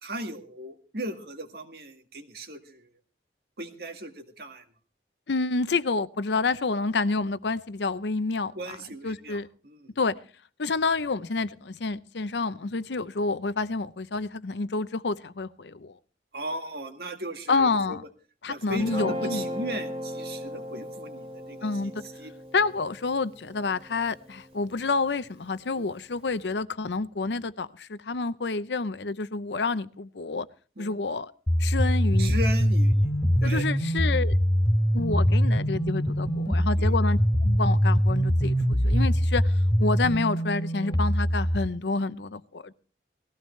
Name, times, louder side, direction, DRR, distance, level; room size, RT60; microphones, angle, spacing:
voice 1, 0.0-2.9 3.6-4.6 8.5-9.9 16.3-18.0 18.5-21.7 22.0-22.3 25.7-25.9 30.8-31.0 32.2-33.7 36.8-37.0, right 1 dB, 60° right, 6 dB, 1.8 m, -37 dB
voice 2, 5.3-8.8 9.0-9.5 10.0-10.2 10.6-16.0 17.5-18.0 18.4-19.4 21.6-21.9 22.5-30.5 30.8-31.3 31.6-32.4 33.4-34.4 34.9-42.7, left 3 dB, 80° left, 15 dB, 0.7 m, -28 dB
Guitar, 18.7-25.0, equal, 35° right, 2.5 m, -37 dB
sound 1, 31.5-41.6, equal, 25° left, 2.0 m, -23 dB
19.5 x 15.5 x 3.2 m, 0.38 s
head